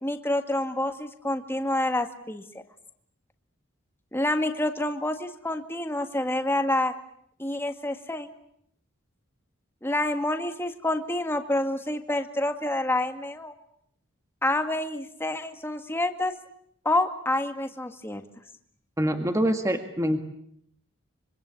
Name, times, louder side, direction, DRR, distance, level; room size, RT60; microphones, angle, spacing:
voice 1, 0.0-2.6 4.1-6.9 7.4-8.3 9.8-13.5 14.4-16.3 16.9-18.2, left 1 dB, 10° left, 6 dB, 1.8 m, -28 dB
voice 2, 19.0-20.2, equal, 15° right, 6 dB, 1.8 m, -25 dB
26.0 x 25.0 x 8.5 m, 0.70 s
head